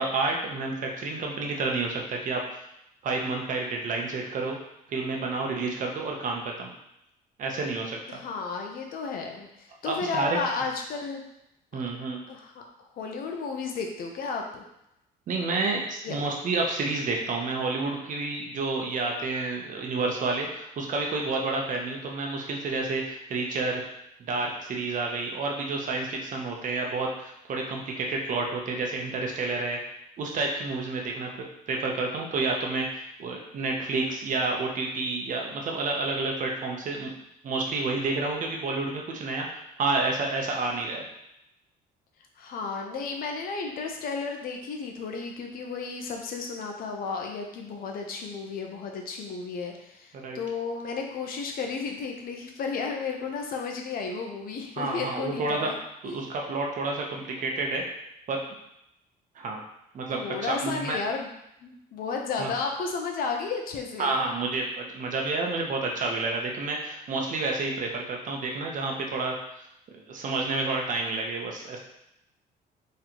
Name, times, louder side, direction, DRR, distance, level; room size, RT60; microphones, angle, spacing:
voice 1, 0.0-2.6 3.0-4.6 4.9-6.7 7.4-8.0 9.9-10.4 11.7-12.2 15.3-23.8 24.2-29.8 30.2-31.3 31.7-37.1 37.4-39.5 39.8-41.0 50.2-50.4 54.8-55.7 56.0-57.8 58.3-58.4 59.4-59.6 59.9-61.0 62.4-62.5 64.0-69.3 69.9-71.8, right 3 dB, 50° right, 1 dB, 0.8 m, -29 dB
voice 2, 8.1-11.2 12.3-12.6 13.0-14.6 16.0-16.2 42.4-55.8 56.0-56.3 60.1-61.3 61.6-64.1, left 4 dB, 60° left, 2 dB, 0.7 m, -33 dB
3.9 x 3.1 x 2.9 m, 0.82 s
cardioid pair, 110°, 17 cm